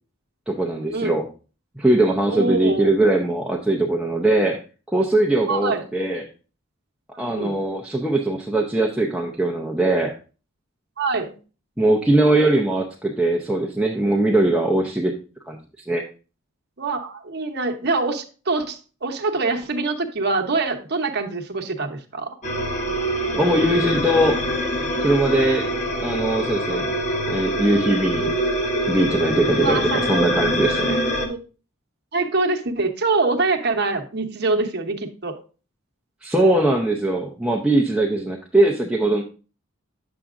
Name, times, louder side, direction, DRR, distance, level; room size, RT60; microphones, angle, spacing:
voice 1, 0.5-1.3 1.8-4.6 4.9-6.3 7.2-10.1 11.8-15.2 15.5-15.6 15.9-16.0 23.3-24.4 25.0-25.7 26.0-26.9 27.3-28.3 28.9-31.0 36.2-39.2, right 1 dB, 5° right, 0 dB, 0.6 m, -20 dB
voice 2, 2.3-2.9 5.5-5.8 7.1-7.6 11.0-11.4 16.8-22.3 26.7-26.9 29.6-30.3 31.1-31.4 32.1-35.4, right 3 dB, 50° right, 4 dB, 1.0 m, -24 dB
sound 1, 22.4-31.3, equal, 35° left, 1.0 m, -24 dB
9.1 x 7.0 x 2.4 m, 0.35 s
head